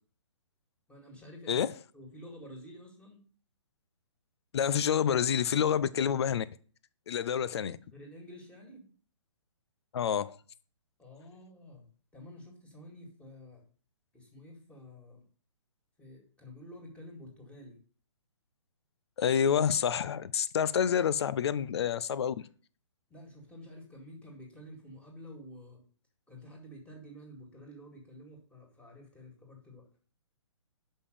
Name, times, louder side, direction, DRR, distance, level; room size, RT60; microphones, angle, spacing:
voice 1, 0.9-1.7 1.9-3.2 7.9-8.9 11.0-11.9 12.1-13.6 14.1-15.2 16.0-17.8 23.1-25.8 26.3-29.9, equal, 5° left, 2.1 m, -50 dB
voice 2, 4.5-6.4 7.1-7.8 9.9-10.4 19.2-22.5, left 8 dB, 55° left, 0.5 m, -28 dB
5.4 x 5.4 x 6.6 m
figure-of-eight pair, 135°, 16 cm